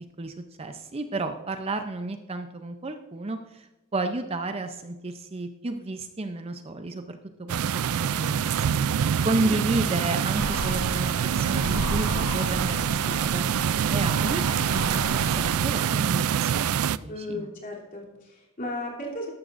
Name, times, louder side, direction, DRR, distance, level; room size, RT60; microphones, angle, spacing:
voice 1, 0.2-8.6 8.9-17.4, right 2 dB, 25° right, 7 dB, 0.6 m, -32 dB
sound 1, 7.5-17.0, right 8 dB, 80° right, 0.4 m, -25 dB
sound 2, 10.4-15.5, left 2 dB, 65° left, 1.4 m, -34 dB
voice 2, 17.1-19.3, left 1 dB, 40° left, -2 dB, 3.2 m, -35 dB
13.5 x 12.0 x 2.6 m, 1.0 s
head